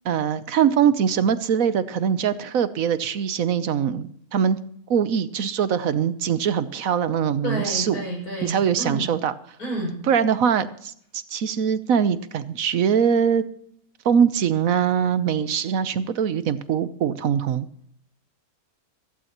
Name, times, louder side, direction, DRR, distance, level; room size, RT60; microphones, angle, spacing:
voice 1, 0.0-4.6 4.9-8.0 8.4-9.3 10.1-13.4 14.0-17.7, right 8 dB, 70° right, 13 dB, 1.2 m, -22 dB
voice 2, 7.4-9.1 9.6-10.0, right 1 dB, 80° left, -1 dB, 6.7 m, -30 dB
15.5 x 15.0 x 3.0 m, 0.65 s
omnidirectional pair, 1.6 m